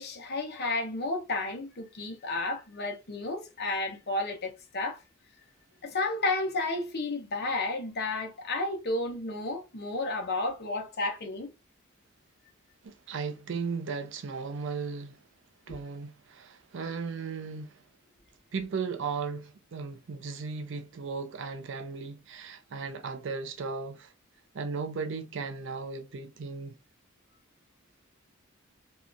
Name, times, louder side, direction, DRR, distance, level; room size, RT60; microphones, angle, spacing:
voice 1, 0.0-5.0 5.8-11.5, left 2 dB, 50° left, 0.8 m, -32 dB
voice 2, 12.8-15.2 15.7-17.8 18.5-24.1 24.5-26.7, right 5 dB, 60° right, 0.5 m, -36 dB
2.7 x 2.3 x 2.5 m
head